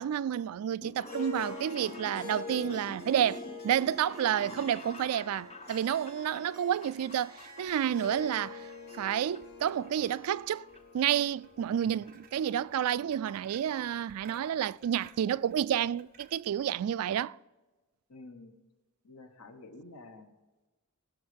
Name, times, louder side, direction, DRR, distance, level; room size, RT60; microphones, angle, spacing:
voice 1, 0.0-8.7 8.9-10.7 10.9-17.4, right 10 dB, 75° right, 0.3 m, -30 dB
sound 1, 0.7-8.4 8.7-9.4 9.7-10.8 11.0-11.1 12.1-12.2 12.3-12.4 12.7-12.8 13.1-13.4 13.8-13.9 14.0-14.1, left 2 dB, 25° left, 0.7 m, -49 dB
Harp, 1.0-13.6, left 4 dB, 45° left, 3.0 m, -46 dB
sound 2, 7.4-16.8, right 5 dB, 40° right, 1.0 m, -59 dB
voice 2, 18.1-18.5 19.0-20.3, left 2 dB, 80° left, 1.3 m, -50 dB
18.5 x 6.4 x 5.2 m
head